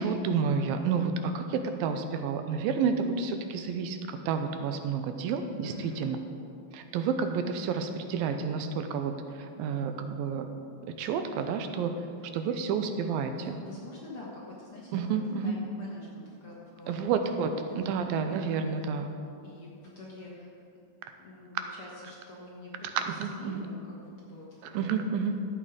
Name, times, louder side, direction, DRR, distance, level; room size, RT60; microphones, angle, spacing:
voice 1, 0.0-6.2 6.7-10.5 11.0-11.9 12.3-13.6 14.9-15.6 16.9-17.5 17.8-19.1 23.1-23.7 24.7-25.4, right 6 dB, 90° right, 7 dB, 2.4 m, -30 dB
voice 2, 5.6-6.1 13.3-15.1 15.4-17.2 17.5-17.8 19.4-20.5 21.2-25.1, left 2 dB, 55° left, -4 dB, 1.8 m, -46 dB
12.5 x 8.6 x 5.0 m, 2.5 s
omnidirectional pair, 4.2 m